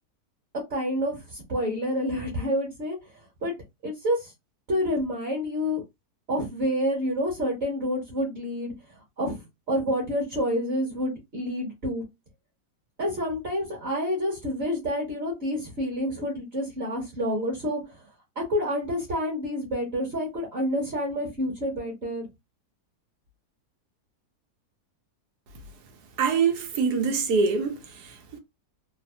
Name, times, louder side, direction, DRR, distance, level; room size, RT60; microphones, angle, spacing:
voice 1, 0.7-3.5 3.8-4.3 4.7-5.8 6.3-12.0 13.0-18.1 18.3-22.3, equal, 40° right, 1.3 m, -28 dB
voice 2, 26.2-28.4, right 5 dB, 70° right, 1.1 m, -25 dB
3.2 x 2.0 x 2.6 m
omnidirectional pair, 1.8 m